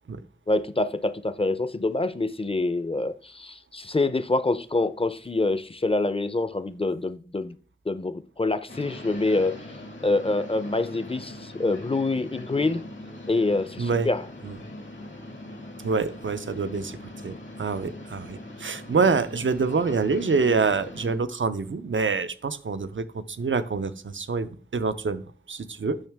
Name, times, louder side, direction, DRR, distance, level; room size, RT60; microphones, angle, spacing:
voice 1, 0.5-7.5 7.9-9.6 10.0-12.8 13.3-14.2, left 2 dB, 30° left, 0.5 m, -26 dB
sound 1, 8.7-21.2, left 1 dB, 75° left, 1.6 m, -41 dB
voice 2, 13.8-14.1 14.4-14.6 15.8-25.2 25.5-26.0, right 4 dB, 80° right, 0.6 m, -26 dB
8.9 x 6.3 x 3.4 m
wide cardioid pair, 55°, 20 cm